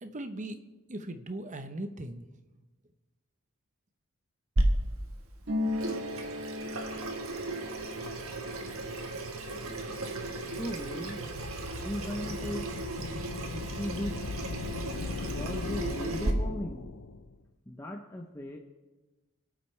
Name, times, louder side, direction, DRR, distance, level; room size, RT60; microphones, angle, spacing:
voice 1, 0.0-2.3, right 1 dB, 35° right, 8 dB, 0.9 m, -39 dB
Water tap faucet / Sink (filling or washing), 4.6-16.3, right 2 dB, 70° right, 1.4 m, -35 dB
Harp, 5.4-12.9 13.2-14.3 14.6-15.2, left 2 dB, 55° right, 2.8 m, -40 dB
voice 2, 10.6-11.2 11.8-12.7 13.5-14.2 15.0-16.9 17.7-18.6, equal, 10° left, 0 dB, 0.7 m, -37 dB
sound 1, 11.0-17.4, left 3 dB, 65° left, 0.6 m, -39 dB
26.5 x 8.9 x 3.3 m, 1.2 s
head